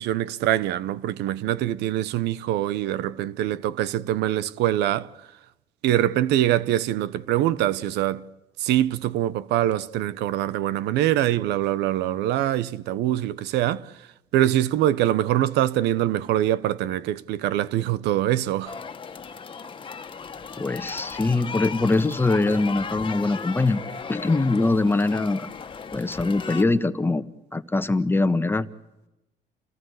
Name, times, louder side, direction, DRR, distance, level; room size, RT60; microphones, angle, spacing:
voice 1, 0.0-5.1 5.8-8.2 8.6-13.9 14.3-18.8, right 13 dB, 85° right, 1.0 m, -24 dB
sound 1, 18.7-26.6, left 5 dB, 30° left, 1.7 m, -36 dB
voice 2, 20.6-23.8 24.1-25.5 25.9-27.2 27.5-28.7, left 3 dB, 15° left, 1.3 m, -22 dB
29.0 x 19.0 x 8.1 m
cardioid pair, 110°, 17 cm